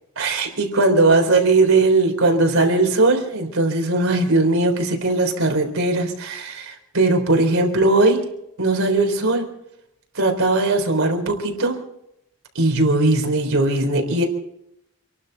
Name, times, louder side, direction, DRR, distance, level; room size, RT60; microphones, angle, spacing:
voice 1, 0.2-8.2 8.6-9.5 10.1-11.8 12.6-14.2, right 2 dB, 70° right, 3 dB, 3.9 m, -19 dB
27.5 x 12.5 x 4.1 m, 0.78 s
head